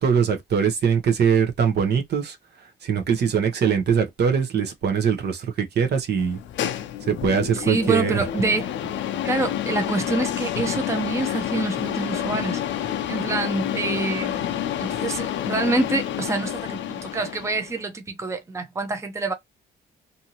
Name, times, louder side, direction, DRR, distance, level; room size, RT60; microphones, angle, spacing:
voice 1, 0.0-2.4 2.8-6.4 7.0-8.3, right 7 dB, 55° right, 0.8 m, -22 dB
sound 1, 6.2-17.8, left 11 dB, 70° left, 0.5 m, -29 dB
voice 2, 7.5-8.7 9.2-12.6 13.1-19.3, right 3 dB, 15° right, 0.7 m, -26 dB
2.7 x 2.6 x 2.8 m
cardioid pair, 90°, 20 cm